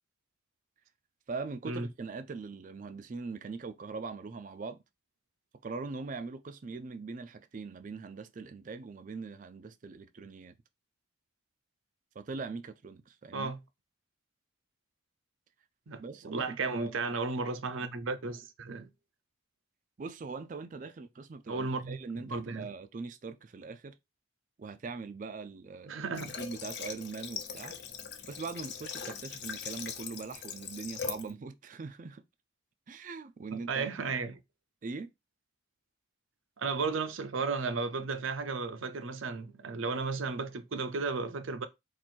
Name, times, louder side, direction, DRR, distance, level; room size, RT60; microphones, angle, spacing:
voice 1, 1.3-4.8 5.6-10.6 12.2-13.5 16.0-17.0 20.0-23.9 24.6-26.0 26.4-27.8 28.3-32.2 32.9-33.9 34.8-35.1, right 4 dB, 40° right, 0.4 m, -41 dB
voice 2, 15.9-18.9 21.5-22.0 22.2-22.7 25.9-26.4 33.5-34.4 36.6-41.7, right 4 dB, 80° right, 0.6 m, -34 dB
Water / Water tap faucet, 26.1-31.3, left 7 dB, 55° left, 0.8 m, -41 dB
4.4 x 2.6 x 4.3 m
head